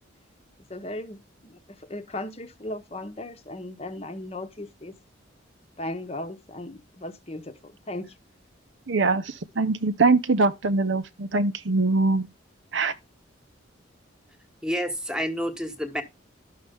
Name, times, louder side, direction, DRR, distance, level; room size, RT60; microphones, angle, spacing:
voice 1, 0.7-4.9 5.8-8.1, left 1 dB, 30° left, 0.9 m, -37 dB
voice 2, 8.9-12.3 12.7-12.9, right 3 dB, 75° right, 0.8 m, -23 dB
voice 3, 14.6-16.0, equal, 5° right, 1.2 m, -29 dB
11.5 x 6.6 x 3.5 m
head